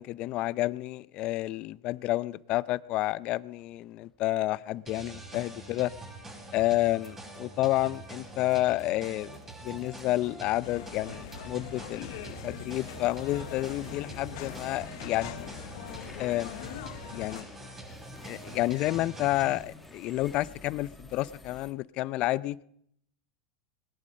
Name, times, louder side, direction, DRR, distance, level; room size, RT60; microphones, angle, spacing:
voice 1, 0.0-5.9 6.5-15.5 16.2-16.5 17.1-17.5 18.2-22.6, left 17 dB, 45° left, 0.5 m, -30 dB
sound 1, 3.4-21.7, left 1 dB, 5° left, 1.7 m, -53 dB
sound 2, 4.9-19.6, right 2 dB, 15° right, 6.3 m, -45 dB
sound 3, 10.6-17.4, left 14 dB, 70° left, 0.9 m, -43 dB
21.0 x 11.0 x 5.3 m
supercardioid pair, 120°, 2 cm